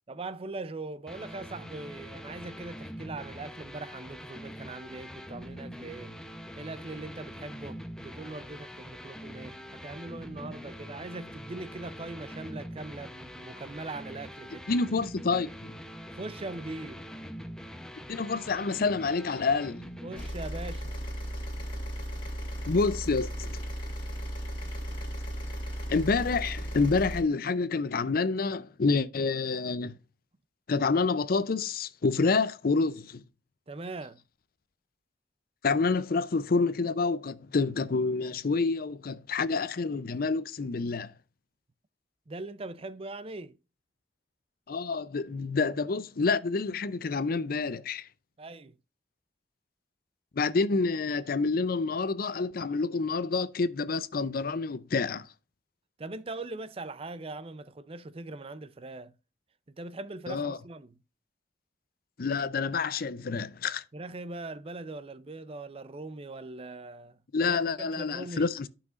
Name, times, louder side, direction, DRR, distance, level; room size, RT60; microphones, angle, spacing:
voice 1, 0.1-6.1 6.6-14.7 16.1-17.0 20.0-20.9 33.7-34.2 42.3-43.6 48.4-48.7 56.0-59.1 59.7-60.9 63.9-68.5, right 2 dB, 30° right, 0.5 m, -41 dB
sound 1, 1.1-20.3, equal, 5° left, 0.7 m, -44 dB
voice 2, 14.7-15.7 18.1-19.9 22.7-23.6 25.9-30.0 30.7-33.2 35.6-41.1 44.7-48.1 50.3-55.3 60.3-60.6 62.2-63.8 67.3-68.7, left 4 dB, 55° left, 0.5 m, -28 dB
sound 2, 20.2-27.2, equal, 30° left, 2.5 m, -36 dB
12.0 x 5.8 x 2.4 m
head